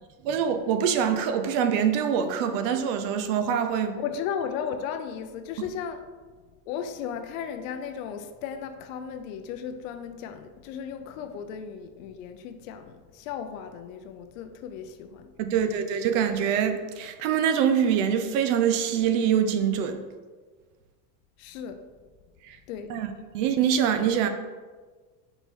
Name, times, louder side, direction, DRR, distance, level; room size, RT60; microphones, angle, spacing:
voice 1, 0.2-4.0 15.4-20.0 22.4-22.6 22.9-24.3, right 8 dB, 50° right, 8 dB, 0.6 m, -24 dB
voice 2, 4.0-6.0 6.7-15.3 21.4-21.8 22.7-22.9, left 7 dB, 55° left, 8 dB, 0.6 m, -35 dB
5.4 x 4.5 x 4.4 m, 1.4 s
supercardioid pair, 165°, 49 cm